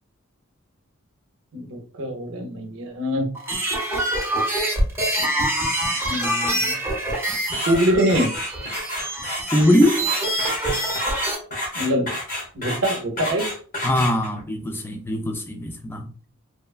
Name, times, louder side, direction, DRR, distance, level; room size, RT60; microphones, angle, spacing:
voice 1, 1.5-3.3 6.1-6.8 7.6-8.3 11.8-12.1 12.5-13.5, equal, 60° right, 0.6 m, -24 dB
sound 1, 3.3-11.4, right 1 dB, 10° right, 0.7 m, -25 dB
sound 2, 7.3-14.4, left 1 dB, 40° left, 1.1 m, -30 dB
voice 2, 9.5-10.0 13.8-16.1, left 1 dB, 10° left, 0.3 m, -21 dB
3.0 x 2.1 x 2.3 m
head